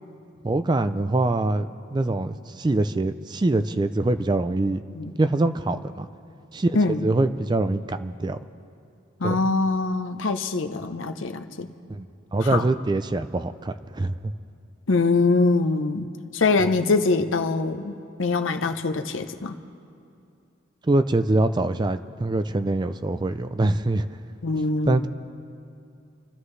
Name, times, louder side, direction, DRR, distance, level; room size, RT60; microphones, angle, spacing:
voice 1, 0.4-4.8 5.2-6.1 6.5-6.7 7.0-8.4 9.2-9.4 11.9-12.1 12.3-14.3 20.8-24.1 24.9-25.1, right 2 dB, 20° right, 11 dB, 0.3 m, -24 dB
voice 2, 6.7-7.1 9.2-11.7 12.4-12.7 14.9-16.1 16.3-19.6 24.4-25.1, left 3 dB, 70° left, 7 dB, 0.8 m, -23 dB
28.5 x 13.0 x 3.3 m, 2.5 s
head